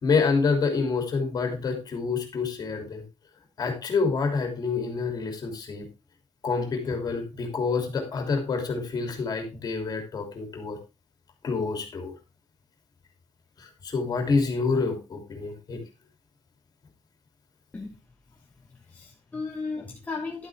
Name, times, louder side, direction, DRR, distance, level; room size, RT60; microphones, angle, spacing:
voice 1, 0.0-3.0 3.6-5.9 6.4-10.8 11.4-12.1 13.6-15.8, left 4 dB, 35° left, 4 dB, 2.9 m, -27 dB
voice 2, 18.6-20.5, left 4 dB, 15° left, -1 dB, 1.3 m, -36 dB
11.5 x 8.3 x 3.5 m, 0.27 s
cardioid pair, 165°, 11 cm